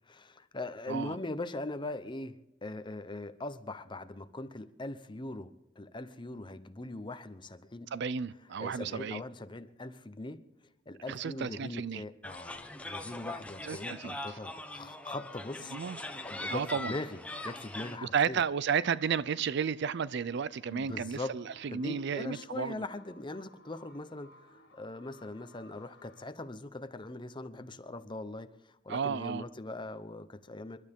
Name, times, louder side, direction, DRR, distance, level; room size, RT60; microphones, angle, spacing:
voice 1, 0.1-2.4 2.6-7.9 8.6-10.4 10.9-18.4 20.7-21.3 21.7-30.8, left 2 dB, 25° left, 0.9 m, -41 dB
voice 2, 7.9-9.2 11.1-12.0 13.6-14.4 15.7-16.0 16.5-16.9 18.0-22.8 28.9-29.4, right 6 dB, 60° right, 0.4 m, -33 dB
sound 1, 12.2-18.0, left 2 dB, 5° left, 1.1 m, -41 dB
sound 2, 19.4-26.2, equal, 60° left, 1.9 m, -59 dB
28.5 x 12.0 x 3.7 m
head